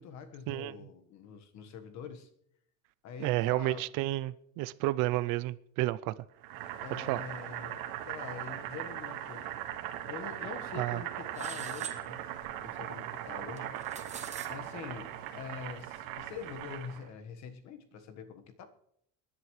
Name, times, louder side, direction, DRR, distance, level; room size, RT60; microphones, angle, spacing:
voice 1, 0.0-2.3 3.0-3.8 6.8-7.8 8.1-9.6 10.0-12.2 12.6-13.8 14.5-18.7, left 6 dB, 50° left, 1.5 m, -45 dB
voice 2, 3.2-6.1 7.0-7.2 10.7-11.0, right 17 dB, 65° right, 0.6 m, -31 dB
Boiling, 6.4-17.1, right 12 dB, 90° right, 1.8 m, -39 dB
sound 1, 11.3-12.0 13.6-14.5, right 7 dB, 20° right, 1.3 m, -43 dB
25.5 x 11.0 x 3.2 m
cardioid pair, 160°, 35 cm